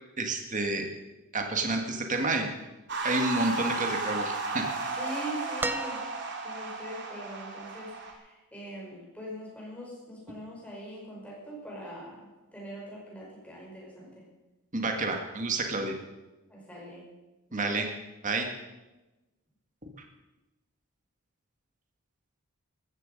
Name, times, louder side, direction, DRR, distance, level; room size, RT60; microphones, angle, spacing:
voice 1, 0.2-0.9 1.3-2.5 3.0-4.7 14.7-15.9 17.5-17.9 18.2-18.5, right 2 dB, 35° right, 4 dB, 1.9 m, -29 dB
sound 1, 2.9-8.1, right 3 dB, 50° right, 2.6 m, -34 dB
voice 2, 4.9-6.0 6.4-14.2 16.5-17.1 17.5-17.9, equal, 5° left, -4 dB, 5.3 m, -42 dB
sound 2, 5.6-6.6 8.1-8.2, right 2 dB, 10° right, 0.5 m, -35 dB
15.0 x 14.0 x 5.4 m, 1.1 s
head